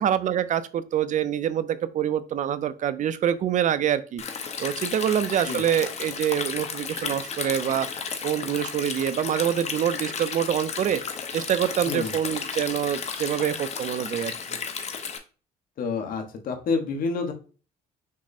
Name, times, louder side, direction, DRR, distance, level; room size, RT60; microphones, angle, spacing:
voice 1, 0.0-14.3, right 9 dB, 50° right, 14 dB, 0.5 m, -26 dB
Stream, 4.2-15.2, left 6 dB, 40° left, 0.8 m, -33 dB
voice 2, 15.8-17.3, left 4 dB, 55° left, 4 dB, 1.2 m, -28 dB
6.1 x 2.1 x 4.1 m, 0.37 s
cardioid pair, 110°, 17 cm